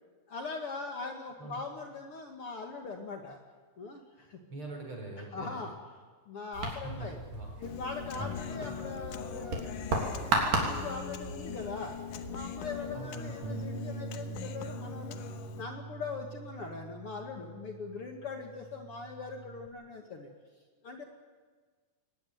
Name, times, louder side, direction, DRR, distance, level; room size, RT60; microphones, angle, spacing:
voice 1, 0.3-3.4 3.8-4.4 5.2-5.8 6.3-7.2 7.6-9.8 10.2-12.0 12.3-15.2 15.5-20.3 20.8-21.0, left 4 dB, 50° left, 3 dB, 2.3 m, -41 dB
voice 2, 4.5-5.6 6.7-7.5 8.4-9.0 12.9-13.4, right 2 dB, 40° right, 1 dB, 5.5 m, -43 dB
sound 1, 6.5-13.1, right 2 dB, 90° right, 5.1 m, -35 dB
Human voice, 7.6-15.6, left 9 dB, 80° left, 2.6 m, -42 dB
Bass guitar, 13.4-19.7, right 4 dB, 60° right, 1.7 m, -44 dB
22.5 x 19.0 x 9.4 m, 1.5 s
omnidirectional pair, 3.7 m